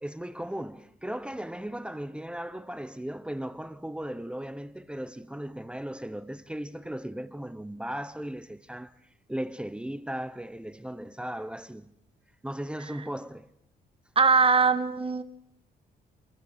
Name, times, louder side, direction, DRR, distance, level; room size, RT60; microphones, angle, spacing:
voice 1, 0.0-8.9 9.3-11.9 12.4-13.5, right 1 dB, 5° right, 1.0 m, -37 dB
voice 2, 14.2-15.2, right 5 dB, 35° right, 1.8 m, -21 dB
29.5 x 23.5 x 6.1 m
cardioid pair, 95°, 17 cm